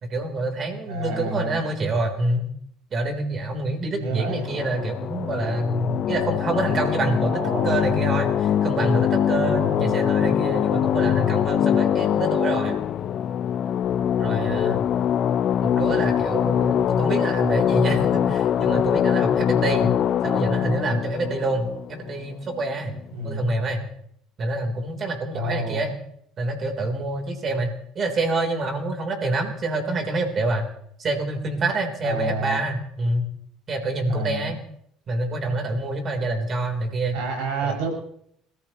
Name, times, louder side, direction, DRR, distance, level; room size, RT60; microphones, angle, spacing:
voice 1, 0.1-2.5 2.9-7.3 7.6-12.7 14.2-14.9 15.6-19.9 20.2-23.0 23.2-23.9 24.4-26.0 26.4-30.7 31.0-33.3 33.7-34.6 35.1-37.2 37.6-37.7, right 2 dB, 40° right, 4 dB, 3.6 m, -26 dB
voice 2, 0.9-1.6 3.9-4.5 7.2-7.7 9.5-10.1 14.3-14.8 19.8-20.0 23.1-23.5 25.3-25.8 32.0-32.6 34.1-34.5 37.1-37.9, right 2 dB, 85° right, 0 dB, 6.4 m, -29 dB
sound 1, 4.4-22.6, left 9 dB, 50° left, 0.8 m, -23 dB
30.0 x 14.5 x 3.1 m, 0.70 s
supercardioid pair, 100°, 0 cm